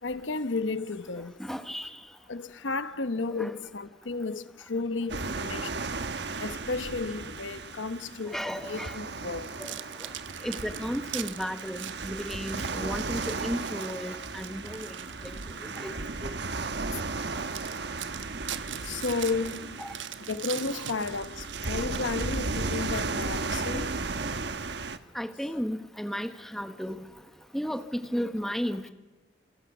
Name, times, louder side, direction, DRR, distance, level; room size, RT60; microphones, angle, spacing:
voice 1, 0.0-1.4 2.3-5.8 6.4-8.4 8.7-9.6 15.5-15.6 18.8-19.8 20.3-23.9, left 3 dB, 85° left, 1.1 m, -33 dB
voice 2, 1.4-2.0 3.4-3.6 8.2-9.0 9.6-10.1 10.4-15.0 15.2-16.0 16.2-16.4 19.8-19.9 20.7-20.9 25.1-27.0 27.5-28.9, equal, ahead, 1.2 m, -34 dB
sound 1, 5.1-25.0, right 3 dB, 65° right, 1.2 m, -35 dB
sound 2, 9.4-15.9 16.4-16.6 17.1-17.2 17.5-23.0, right 10 dB, 85° right, 1.2 m, -42 dB
29.5 x 27.0 x 6.1 m
head